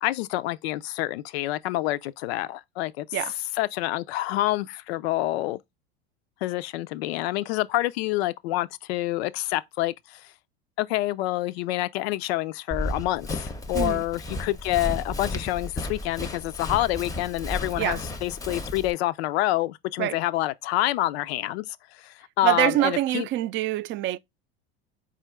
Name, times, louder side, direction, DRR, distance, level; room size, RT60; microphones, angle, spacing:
voice 1, 0.0-3.1 3.6-5.6 6.4-10.3 10.8-23.3, left 16 dB, 80° left, 0.5 m, -27 dB
Run, 12.7-18.9, left 2 dB, 10° left, 0.6 m, -33 dB
voice 2, 22.4-24.2, right 15 dB, 40° right, 0.4 m, -25 dB
4.4 x 2.5 x 4.3 m
supercardioid pair, 100°, 31 cm